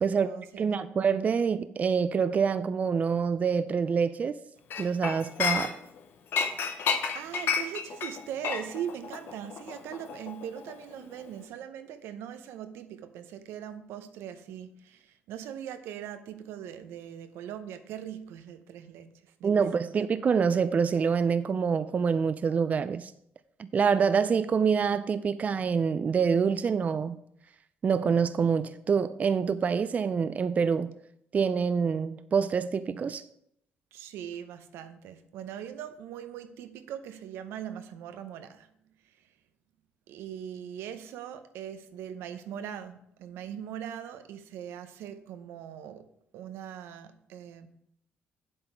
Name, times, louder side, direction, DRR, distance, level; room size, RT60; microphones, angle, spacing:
voice 1, 0.0-0.8 6.6-19.1 19.4-19.9 33.9-38.7 40.1-46.1 46.3-47.7, right 9 dB, 85° right, 0.8 m, -41 dB
voice 2, 0.6-4.3 4.8-5.8 19.4-23.1 23.6-27.2 27.8-30.9 31.3-33.2, right 6 dB, 40° right, 0.4 m, -26 dB
Chink clink, 4.7-6.0 6.3-10.9 11.2-11.4, left 6 dB, 65° left, 1.0 m, -31 dB
7.8 x 7.6 x 4.5 m
cardioid pair, 90°, 4 cm